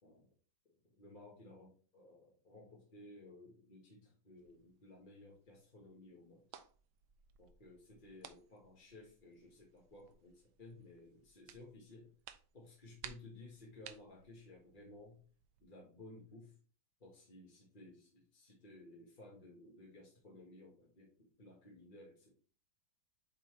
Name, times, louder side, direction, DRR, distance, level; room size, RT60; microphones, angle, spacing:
voice 1, 0.0-0.3 0.7-6.4 7.4-12.1 12.5-15.2 15.6-16.5 17.0-22.4, left 2 dB, 30° left, -3 dB, 1.4 m, -57 dB
sound 1, 4.4-15.6, right 9 dB, 75° right, 1.2 m, -59 dB
8.4 x 4.0 x 3.2 m, 0.39 s
omnidirectional pair, 2.1 m